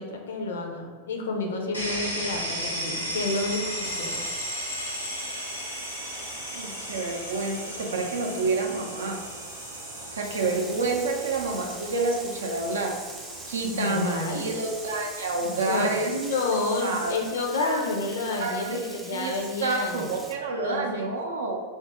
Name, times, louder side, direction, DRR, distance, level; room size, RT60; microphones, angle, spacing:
voice 1, 0.0-4.2 13.7-14.4 15.4-20.2 20.6-21.1, left 3 dB, 65° left, 2 dB, 0.5 m, -30 dB
sound 1, 1.7-15.4, equal, 90° left, 0.8 m, -36 dB
sound 2, 3.8-17.1, right 3 dB, 30° right, 0.9 m, -42 dB
voice 2, 6.5-9.2 10.1-12.9 13.5-16.1 16.8-17.1 17.6-17.8 18.4-21.6, right 3 dB, 65° right, 2 dB, 0.5 m, -29 dB
Frying (food), 10.2-20.4, right 1 dB, 5° right, 0.4 m, -45 dB
2.6 x 2.5 x 3.4 m, 1.5 s
figure-of-eight pair, 90°, 0 cm